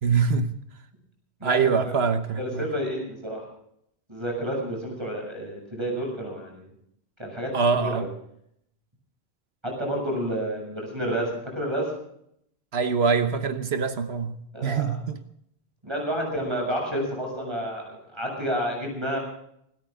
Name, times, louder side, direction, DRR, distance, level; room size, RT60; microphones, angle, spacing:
voice 1, 0.0-0.5 1.4-2.7 7.5-8.1 12.7-15.2, right 5 dB, 70° right, 9 dB, 1.3 m, -24 dB
voice 2, 1.4-2.1 2.4-3.5 4.1-6.7 7.2-7.5 7.8-8.1 9.6-11.9 14.5-14.9 15.8-19.2, equal, 25° right, 0 dB, 7.2 m, -30 dB
26.0 x 13.5 x 3.7 m, 0.71 s
omnidirectional pair, 1.1 m